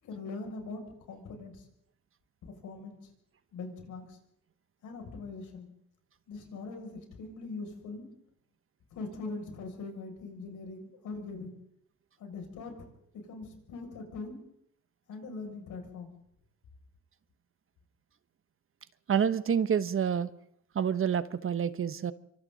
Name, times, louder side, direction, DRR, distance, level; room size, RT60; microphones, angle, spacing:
voice 1, 0.0-1.6 2.4-3.1 3.5-4.2 4.8-5.7 6.3-8.0 8.9-11.5 12.2-12.9 13.1-14.4 15.1-16.1, left 3 dB, 80° left, 2 dB, 6.8 m, -42 dB
voice 2, 19.1-20.3 20.7-22.1, right 8 dB, 45° right, 13 dB, 1.1 m, -28 dB
27.0 x 25.0 x 4.1 m, 0.72 s
cardioid pair, 90°, 30 cm